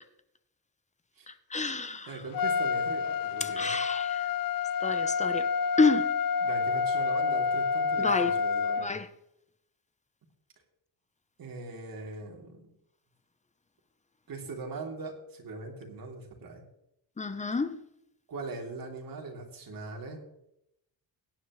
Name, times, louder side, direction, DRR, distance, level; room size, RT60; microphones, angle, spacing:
voice 1, 1.5-2.1 3.6-4.1 4.8-5.5 5.8-6.1 8.0-8.4 8.8-9.1 17.2-17.7, left 3 dB, 20° left, 0.7 m, -28 dB
voice 2, 2.1-3.8 6.4-9.0 11.4-12.7 14.3-16.6 18.3-20.2, right 3 dB, 60° right, 3.1 m, -41 dB
Trumpet, 2.3-8.9, left 5 dB, 60° left, 0.5 m, -28 dB
17.5 x 10.0 x 3.1 m
wide cardioid pair, 145°, 40 cm